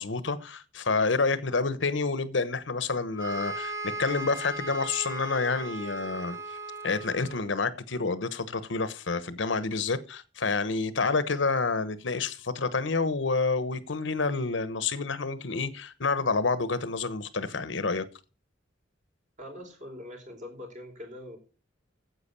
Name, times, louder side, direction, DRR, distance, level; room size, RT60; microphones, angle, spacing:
voice 1, 0.0-6.4 6.8-18.1, left 4 dB, 70° left, 1.0 m, -28 dB
sound 1, 3.2-7.6, right 2 dB, 15° right, 1.5 m, -37 dB
voice 2, 19.4-21.4, left 1 dB, 40° right, 4.4 m, -43 dB
9.9 x 8.1 x 6.8 m
head